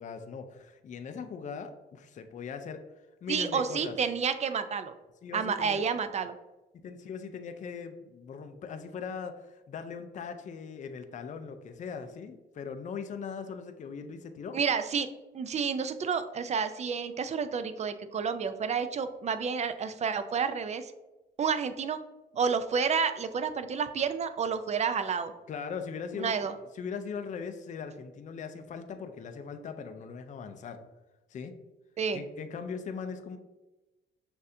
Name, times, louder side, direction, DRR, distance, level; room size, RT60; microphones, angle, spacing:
voice 1, 0.0-2.8 3.2-4.0 5.2-5.8 6.8-14.6 25.5-30.8 31.3-31.5 32.1-33.4, left 6 dB, 40° left, 8 dB, 0.4 m, -40 dB
voice 2, 3.3-4.9 5.3-6.3 14.5-15.1 15.3-20.9 21.4-22.0 22.3-25.3 26.2-26.5 32.0-32.2, right 6 dB, 35° right, 10 dB, 0.4 m, -30 dB
6.4 x 2.5 x 2.6 m, 1.1 s
cardioid pair, 90°, 20 cm